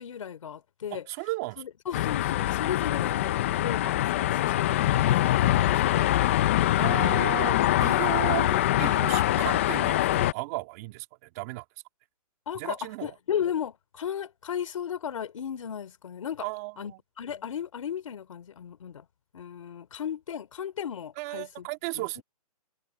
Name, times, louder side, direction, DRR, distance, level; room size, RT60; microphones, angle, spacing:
voice 1, 0.0-1.0 1.6-3.3 3.6-6.5 12.5-16.5 16.8-19.0 19.3-21.7 21.9-22.2, left 8 dB, 55° left, 3.4 m, -35 dB
voice 2, 0.9-1.6 6.8-11.6 12.5-13.1 16.4-17.0 21.2-22.2, right 23 dB, 25° right, 2.3 m, -35 dB
sound 1, 1.9-10.3, left 14 dB, 20° left, 0.5 m, -24 dB
hypercardioid pair, 170°, 20 cm